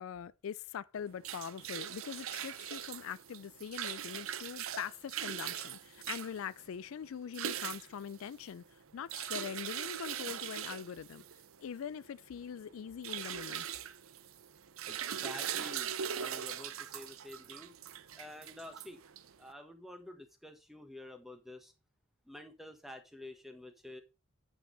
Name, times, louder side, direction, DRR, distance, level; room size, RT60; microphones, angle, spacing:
voice 1, 0.0-11.2 11.6-13.7, left 8 dB, 75° left, 0.4 m, -43 dB
sound 1, 1.0-19.5, right 9 dB, 75° right, 0.6 m, -41 dB
voice 2, 14.9-17.7 18.1-19.0 19.4-21.7 22.2-24.0, left 1 dB, ahead, 1.4 m, -49 dB
8.5 x 7.4 x 4.0 m
head